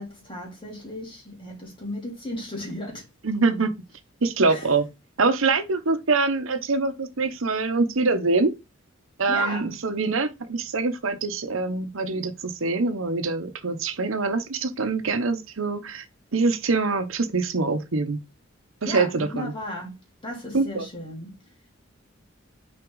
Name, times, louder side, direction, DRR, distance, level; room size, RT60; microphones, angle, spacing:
voice 1, 0.0-3.1 4.5-4.7 9.3-9.7 18.8-20.0 20.2-21.3, left 1 dB, 25° left, 2.9 m, -35 dB
voice 2, 3.2-3.7 4.2-4.9 5.2-8.5 9.2-16.0 16.3-18.2 18.8-19.5 20.5-20.9, right 3 dB, 85° right, 0.9 m, -24 dB
5.9 x 4.3 x 3.9 m
head